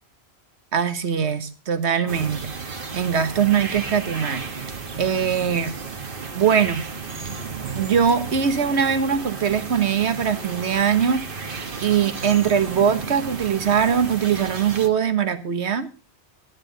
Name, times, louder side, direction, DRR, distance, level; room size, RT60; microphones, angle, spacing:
voice 1, 0.7-4.7 5.0-5.7 6.3-6.9 7.7-11.2 11.8-15.9, right 7 dB, 75° right, 10 dB, 1.4 m, -22 dB
sound 1, 2.1-14.9, right 4 dB, 50° right, 1.4 m, -33 dB
12.0 x 9.7 x 3.9 m, 0.33 s
omnidirectional pair, 1.1 m